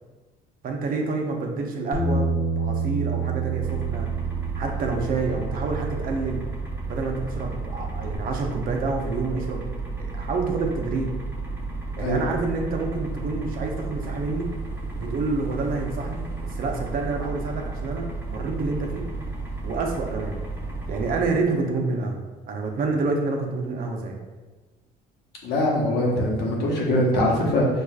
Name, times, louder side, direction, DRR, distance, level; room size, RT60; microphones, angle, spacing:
voice 1, 0.6-4.1 4.5-6.4 6.9-9.7 10.0-11.1 12.0-14.5 14.9-19.1 19.6-20.4 20.9-22.2 22.5-24.2, right 3 dB, 60° right, 1 dB, 0.6 m, -28 dB
Bass guitar, 1.9-8.2, right 4 dB, 25° left, 0.9 m, -29 dB
sound 1, 3.6-21.3, right 3 dB, 10° right, 0.7 m, -33 dB
voice 2, 25.4-27.7, left 1 dB, 75° left, -2 dB, 0.9 m, -22 dB
4.7 x 2.4 x 2.3 m, 1.2 s
cardioid pair, 110°, 17 cm